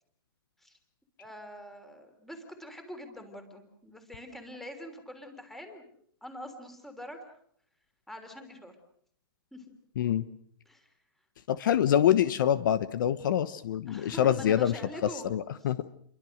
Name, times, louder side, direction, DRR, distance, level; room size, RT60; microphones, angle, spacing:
voice 1, 1.2-5.8 6.2-7.2 8.1-8.7 9.5-9.6 10.6-10.9 13.9-15.4, left 1 dB, ahead, 6 dB, 3.3 m, -44 dB
voice 2, 11.5-14.8 15.2-15.9, left 10 dB, 50° left, 14 dB, 1.1 m, -25 dB
29.5 x 23.0 x 6.5 m, 0.66 s
hypercardioid pair, 170°, 13 cm